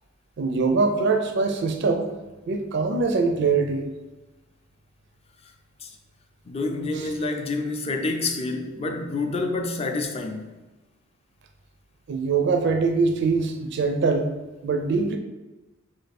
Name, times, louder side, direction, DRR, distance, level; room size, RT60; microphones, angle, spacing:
voice 1, 0.4-2.1 2.5-3.9 6.9-7.1 12.1-14.3 14.6-15.2, right 4 dB, 60° right, 0.4 m, -23 dB
voice 2, 6.5-10.5, left 3 dB, 30° left, 0.5 m, -28 dB
3.7 x 3.3 x 4.1 m
head